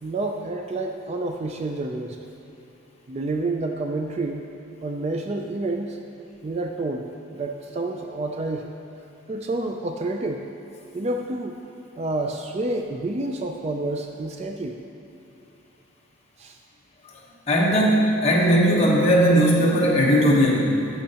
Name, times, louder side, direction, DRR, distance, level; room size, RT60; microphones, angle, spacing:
voice 1, 0.0-2.2 3.1-4.4 4.8-6.0 6.4-8.7 9.3-10.4 10.9-11.6 12.0-14.8 16.4-16.6, right 2 dB, 30° right, 3 dB, 0.3 m, -29 dB
voice 2, 17.5-20.9, equal, 30° left, -3 dB, 1.1 m, -18 dB
11.5 x 6.5 x 2.9 m, 2.9 s
head